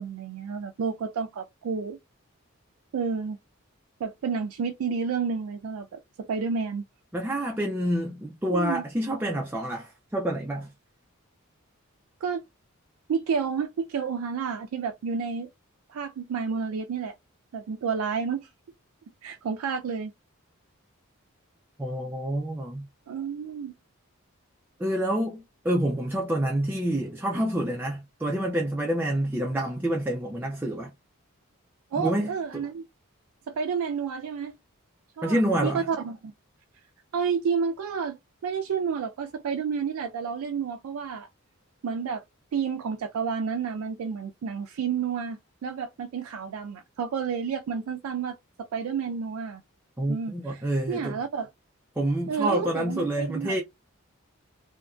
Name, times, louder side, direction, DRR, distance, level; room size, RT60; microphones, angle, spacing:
voice 1, 0.0-2.0 2.9-3.4 4.0-6.8 8.5-8.8 12.2-12.4 13.1-15.5 15.9-17.2 17.5-18.5 19.2-20.1 23.1-23.7 31.9-32.8 33.5-34.5 35.2-36.3 37.1-41.3 41.8-42.2 42.5-49.6 50.1-51.5 52.3-53.6, right 6 dB, 90° right, 0.3 m, -30 dB
voice 2, 7.1-10.7 21.8-22.9 24.8-30.9 32.0-32.6 35.2-35.9 50.0-51.2 52.0-53.6, right 1 dB, 10° right, 0.3 m, -28 dB
2.8 x 2.4 x 2.3 m
head